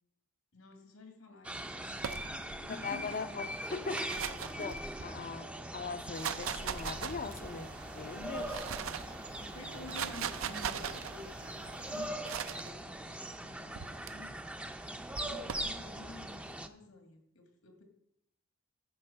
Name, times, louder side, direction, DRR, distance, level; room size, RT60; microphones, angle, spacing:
voice 1, 0.5-3.5 4.0-4.6 8.1-8.9 9.3-14.4 15.1-17.8, left 3 dB, 85° left, 1.9 m, -51 dB
sound 1, 1.4-16.7, right 1 dB, 5° right, 0.5 m, -41 dB
sound 2, 2.0-2.7 3.7-5.2 5.9-7.6 8.2-9.1 9.7-11.1 12.2-12.7 13.8-14.1 15.2-15.8, right 8 dB, 75° right, 0.5 m, -39 dB
voice 2, 2.6-4.1 4.5-8.5, left 5 dB, 45° left, 0.5 m, -41 dB
sound 3, 6.7-12.1, right 2 dB, 50° right, 1.0 m, -51 dB
11.0 x 4.8 x 6.5 m
head